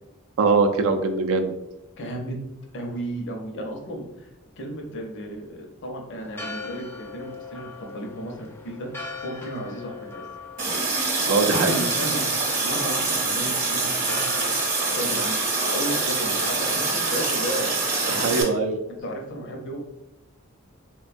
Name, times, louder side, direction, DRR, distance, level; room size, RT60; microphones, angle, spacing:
voice 1, 0.4-1.5 11.3-11.7 18.1-18.8, right 4 dB, 70° right, 6 dB, 0.4 m, -22 dB
voice 2, 2.0-2.4 2.7-4.3 4.6-8.9 9.2-10.2 11.2-12.3 12.6-14.5 15.0-17.7 18.1-18.5 19.0-19.9, right 1 dB, 60° left, 1 dB, 0.6 m, -33 dB
Church bell, 6.2-17.7, left 4 dB, 10° left, 0.4 m, -40 dB
Water tap faucet, 10.6-18.4, right 3 dB, 40° right, 0.8 m, -25 dB
3.4 x 2.2 x 2.5 m, 0.86 s
head